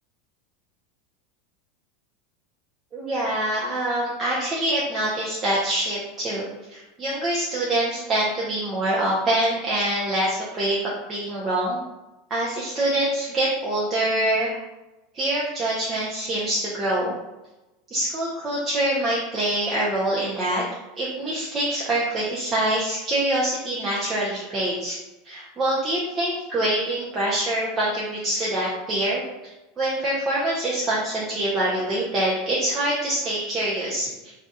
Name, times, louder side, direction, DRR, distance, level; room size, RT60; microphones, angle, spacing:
voice 1, 2.9-11.8 12.3-14.6 15.1-17.1 17.9-20.6 21.0-25.0 25.2-29.2 29.8-34.1, right 1 dB, 20° right, -6 dB, 0.6 m, -25 dB
2.4 x 2.3 x 4.0 m, 1.0 s
supercardioid pair, 150°, 0 cm